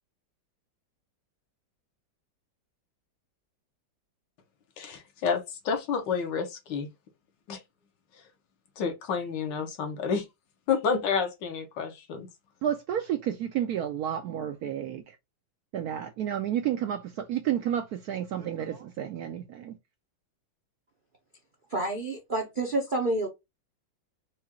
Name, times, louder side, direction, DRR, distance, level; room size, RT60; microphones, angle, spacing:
voice 1, 4.8-6.9 7.5-7.6 8.8-10.2 10.7-12.3, left 6 dB, 75° left, 1.5 m, -29 dB
voice 2, 12.6-15.2 15.7-19.8, right 10 dB, 70° right, 0.9 m, -31 dB
voice 3, 21.7-23.3, right 2 dB, 55° right, 0.5 m, -28 dB
4.9 x 2.3 x 2.9 m
omnidirectional pair, 2.1 m